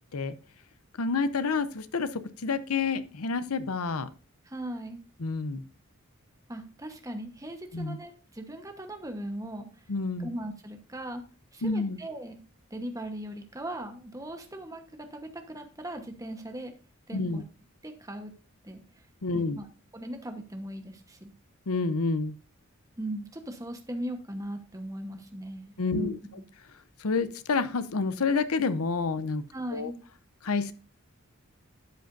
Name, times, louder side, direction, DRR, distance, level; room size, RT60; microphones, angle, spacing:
voice 1, 1.0-4.1 5.2-5.6 7.7-8.0 9.9-10.3 11.6-12.0 17.1-17.4 19.2-19.6 21.7-22.3 25.8-26.2 27.0-29.4 29.7-29.9 30.4-30.7, left 4 dB, 90° left, 13 dB, 0.7 m, -28 dB
voice 2, 4.4-5.0 6.5-9.7 10.2-11.2 11.5-12.3 12.7-16.7 17.1-17.4 17.8-18.3 18.6-18.8 19.3-19.7 19.9-21.3 23.0-26.1 29.5-30.0, right 1 dB, 15° right, 5 dB, 1.1 m, -38 dB
12.0 x 7.8 x 2.6 m, 0.36 s
head